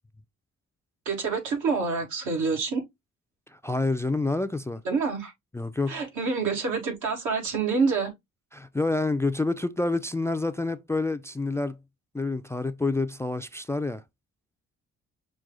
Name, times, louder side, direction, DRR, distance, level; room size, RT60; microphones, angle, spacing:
voice 1, 1.1-2.8 4.8-5.3 5.9-8.1, right 4 dB, 80° right, 2.0 m, -27 dB
voice 2, 3.5-4.8 5.5-6.0 8.5-11.8 12.1-14.0, left 2 dB, 10° left, 0.3 m, -28 dB
6.1 x 2.2 x 3.8 m
cardioid pair, 90°, 30 cm